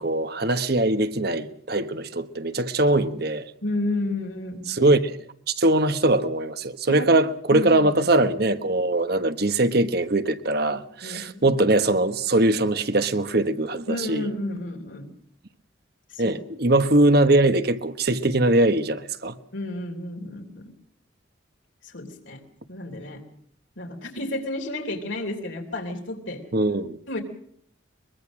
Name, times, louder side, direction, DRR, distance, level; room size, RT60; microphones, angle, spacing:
voice 1, 0.0-3.5 4.7-5.1 5.5-14.3 16.2-19.4 26.5-27.0, right 2 dB, 55° right, 1.3 m, -21 dB
voice 2, 3.6-4.7 6.9-7.1 7.5-7.9 11.0-11.4 13.9-15.0 16.1-16.4 19.5-20.6 21.8-22.4 22.7-23.2 23.8-26.4 27.1-27.2, left 1 dB, 75° left, 3.3 m, -31 dB
23.0 x 23.0 x 6.3 m
head